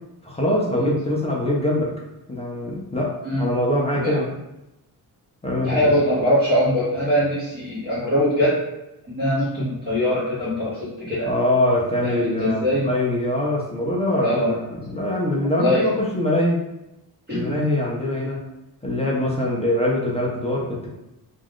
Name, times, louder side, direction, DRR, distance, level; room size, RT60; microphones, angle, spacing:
voice 1, 0.2-1.9 2.3-4.3 5.4-5.8 11.2-16.6 17.3-18.4 18.8-20.9, left 1 dB, 15° left, -4 dB, 0.4 m, -23 dB
voice 2, 5.6-8.5 9.1-11.3 12.0-12.9 14.2-14.5 15.6-15.8 17.3-17.6 19.2-19.3, equal, 25° right, -12 dB, 0.8 m, -22 dB
2.4 x 2.2 x 3.4 m, 0.91 s
wide cardioid pair, 175°, 39 cm